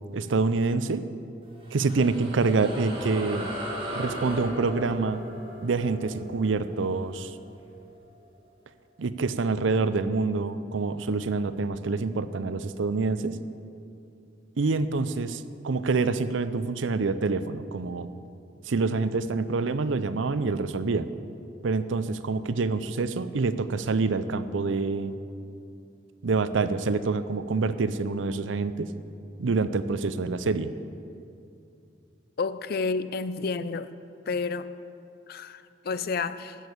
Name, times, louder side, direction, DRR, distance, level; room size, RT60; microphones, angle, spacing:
voice 1, 0.1-1.0 1.7-3.5 3.9-5.2 5.6-7.4 9.0-13.4 14.6-18.1 18.7-21.1 21.6-25.2 26.2-28.9 29.4-30.7, right 3 dB, 80° right, 0.5 m, -26 dB
sound 1, 1.4-8.2, equal, 30° right, 1.9 m, -38 dB
voice 2, 32.4-33.9 34.3-34.7 35.3-36.6, left 4 dB, 55° left, 0.4 m, -30 dB
13.0 x 6.4 x 8.6 m
head